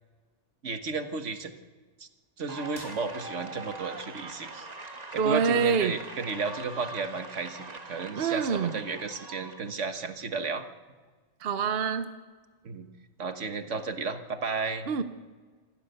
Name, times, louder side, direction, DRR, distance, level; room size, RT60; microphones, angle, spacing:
voice 1, 0.6-1.5 2.0-2.1 2.4-4.7 5.1-10.7 12.6-12.9 13.2-14.9, right 4 dB, 80° right, 8 dB, 1.7 m, -33 dB
sound 1, 2.5-9.7, right 3 dB, 35° right, 1.6 m, -42 dB
sound 2, 2.7-3.7, left 1 dB, 35° left, 4.2 m, -50 dB
voice 2, 5.2-5.9 8.2-8.7 11.4-12.1 14.9-15.0, right 6 dB, 55° right, 9 dB, 1.0 m, -26 dB
27.0 x 14.5 x 6.8 m, 1.4 s
omnidirectional pair, 1.2 m